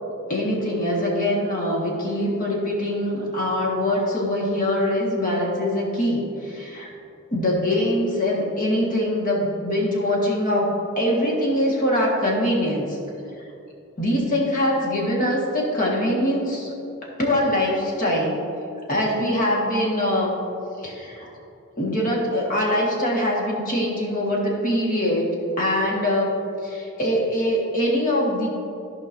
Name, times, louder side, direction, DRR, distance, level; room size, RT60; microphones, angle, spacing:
voice 1, 0.3-6.9 7.3-13.0 14.0-16.8 17.0-18.4 18.9-20.4 20.8-21.3 21.8-28.5, left 1 dB, 40° left, -3 dB, 1.6 m, -23 dB
14.5 x 5.2 x 2.7 m, 2.8 s
head